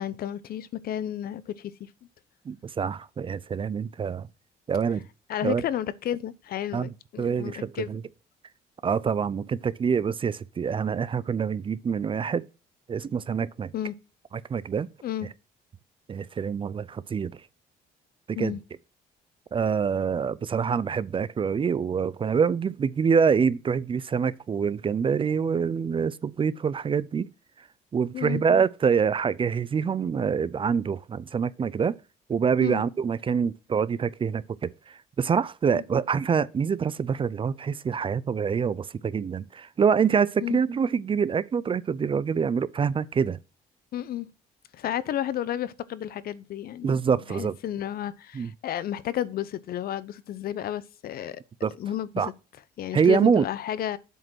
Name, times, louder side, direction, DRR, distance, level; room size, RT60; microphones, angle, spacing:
voice 1, 0.0-1.9 5.3-8.0 13.7-14.0 15.0-15.3 18.3-18.6 28.1-28.4 32.6-32.8 35.7-35.8 40.4-40.6 43.9-44.3 44.7-47.0 47.3-51.4 51.8-52.3 52.8-54.0, left 11 dB, 65° left, 0.7 m, -32 dB
voice 2, 2.5-4.3 4.7-5.0 5.4-5.6 6.7-6.9 7.2-8.0 8.8-12.5 12.9-13.7 14.5-14.9 16.1-17.3 18.3-18.5 19.5-27.3 27.9-31.9 32.3-34.7 35.2-43.4 46.8-47.5 48.3-48.5 51.6-51.7 52.1-52.3 52.9-53.4, right 6 dB, 30° right, 0.4 m, -25 dB
7.7 x 5.1 x 6.2 m
cardioid pair, 100°, 17 cm